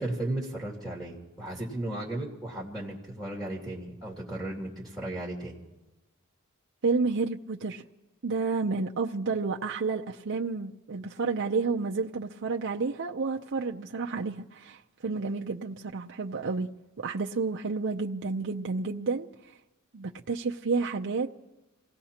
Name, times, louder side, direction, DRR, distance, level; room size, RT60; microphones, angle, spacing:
voice 1, 0.0-5.6, right 1 dB, ahead, 2.3 m, -35 dB
voice 2, 6.8-7.8 8.2-16.7 17.0-19.3 19.9-21.3, right 4 dB, 55° right, 0.6 m, -30 dB
28.5 x 17.5 x 2.9 m
head